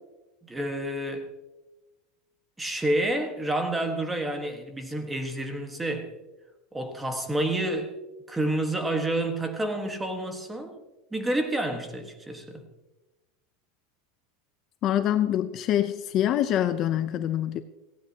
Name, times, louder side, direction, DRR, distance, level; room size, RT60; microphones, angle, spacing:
voice 1, 0.4-1.3 2.6-6.1 6.7-7.9 8.3-10.8 11.1-12.6, right 1 dB, 10° right, 1.4 m, -29 dB
voice 2, 14.8-17.6, left 11 dB, 35° left, 0.6 m, -25 dB
17.5 x 16.0 x 2.8 m
supercardioid pair, 160°, 0 cm